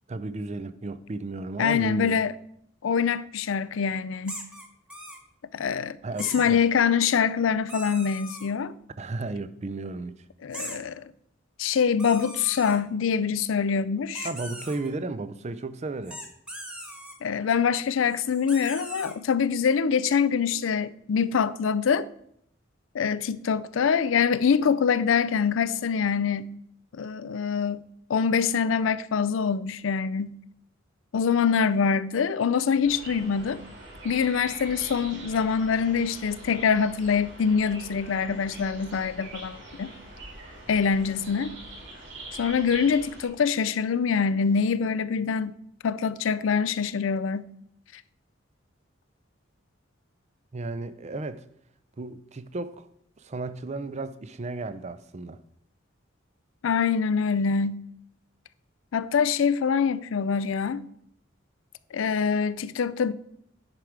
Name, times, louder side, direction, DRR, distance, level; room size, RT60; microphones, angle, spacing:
voice 1, 0.1-2.2 6.0-6.6 9.0-10.2 14.2-16.2 50.5-51.5 52.0-52.9 53.2-55.4, right 2 dB, 35° right, 0.5 m, -34 dB
voice 2, 1.6-2.3 2.8-4.4 5.5-8.7 10.4-11.0 11.6-14.3 17.2-22.1 22.9-26.5 26.9-27.8 28.1-30.4 31.1-33.6 34.0-39.9 40.7-41.5 42.3-45.5 45.8-47.5 56.6-57.8 58.9-60.8 61.9-63.1, left 6 dB, 75° left, 0.4 m, -24 dB
sound 1, 4.3-5.2 6.2-6.5 7.7-8.5 10.5-10.8 12.0-12.8 14.1-14.9 16.1-17.1 18.0-19.1, right 1 dB, 5° right, 1.2 m, -40 dB
sound 2, 32.8-43.3, right 2 dB, 65° right, 3.3 m, -43 dB
9.9 x 4.6 x 4.9 m
head